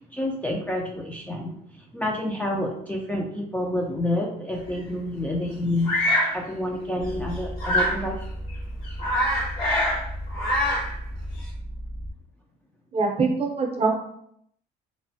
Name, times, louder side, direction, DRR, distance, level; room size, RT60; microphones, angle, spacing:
voice 1, 0.1-1.6 1.9-5.9 6.3-8.2, left 1 dB, 10° left, -2 dB, 0.3 m, -28 dB
Bird vocalization bird call bird song, 5.8-6.3 7.6-8.0 8.5-8.6 8.8-10.0 10.3-10.9, left 1 dB, 70° left, 1.3 m, -24 dB
sound 1, 7.0-12.1, equal, 45° left, 0.8 m, -35 dB
voice 2, 12.9-14.0, right 4 dB, 35° right, 2 dB, 0.6 m, -23 dB
3.0 x 2.0 x 2.6 m, 0.70 s
cardioid pair, 110°, 17 cm